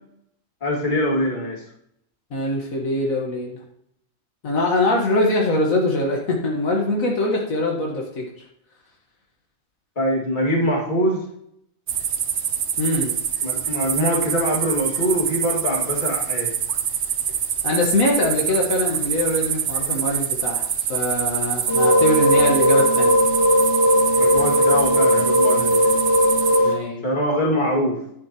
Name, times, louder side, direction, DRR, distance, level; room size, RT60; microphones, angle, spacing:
voice 1, 0.6-1.6 10.0-11.3 13.4-16.5 24.1-26.0 27.0-28.0, equal, 35° left, -1 dB, 2.4 m, -23 dB
voice 2, 2.3-3.6 4.4-8.2 12.8-13.1 17.6-23.2 26.6-27.0, left 1 dB, 75° left, -1 dB, 1.9 m, -23 dB
sound 1, 11.9-26.6, right 8 dB, 60° right, 0.9 m, -25 dB
sound 2, 21.7-26.7, equal, 50° left, 2.0 m, -18 dB
9.9 x 8.6 x 2.9 m, 0.74 s
omnidirectional pair, 1.4 m